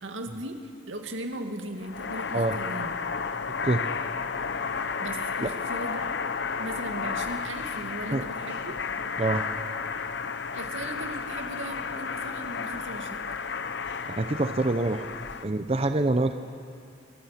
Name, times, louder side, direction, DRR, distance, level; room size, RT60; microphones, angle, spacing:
voice 1, 0.0-3.0 5.0-6.1 6.6-8.8 10.5-13.2, right 1 dB, 90° right, 4 dB, 2.2 m, -38 dB
sound 1, 1.8-15.4, left 5 dB, 65° left, 0.8 m, -32 dB
voice 2, 14.1-15.1 15.4-16.3, right 2 dB, 30° right, 8 dB, 0.7 m, -25 dB
27.0 x 22.5 x 5.9 m, 2.3 s
head